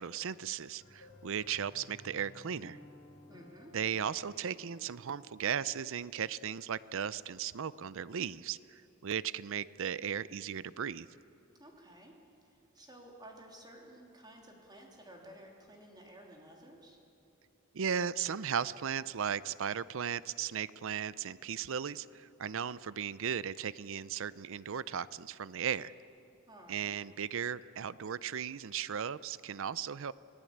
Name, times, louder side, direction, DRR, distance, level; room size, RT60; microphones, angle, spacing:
voice 1, 0.0-2.8 3.7-11.1 17.7-25.9 26.7-30.1, right 8 dB, 65° right, 18 dB, 0.5 m, -36 dB
sound 1, 0.8-6.4, left 1 dB, 75° left, 4.5 m, -56 dB
voice 2, 3.3-3.7 11.6-12.1 12.5-17.0 26.5-27.0, right 1 dB, 20° right, 0 dB, 3.3 m, -54 dB
26.5 x 18.0 x 8.7 m, 2.7 s
head